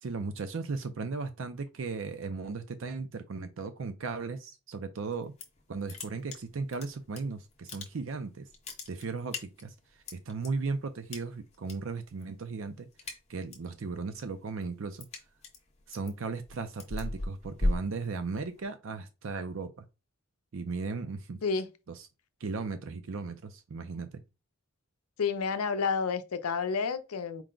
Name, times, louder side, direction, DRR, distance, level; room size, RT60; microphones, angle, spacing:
voice 1, 0.0-5.3 5.7-8.5 8.9-12.9 13.3-15.1 15.9-19.8 20.5-21.4 22.0-22.1 22.4-24.2, right 4 dB, 60° right, 0.5 m, -36 dB
sound 1, 5.1-5.6 5.9-7.2 7.5-8.2 8.5-10.5 11.1-11.7 12.0-12.4 12.7-13.7 14.1-18.6, left 1 dB, 30° left, 0.8 m, -36 dB
voice 2, 25.2-27.4, left 5 dB, 90° left, 0.6 m, -30 dB
4.6 x 2.1 x 3.7 m
head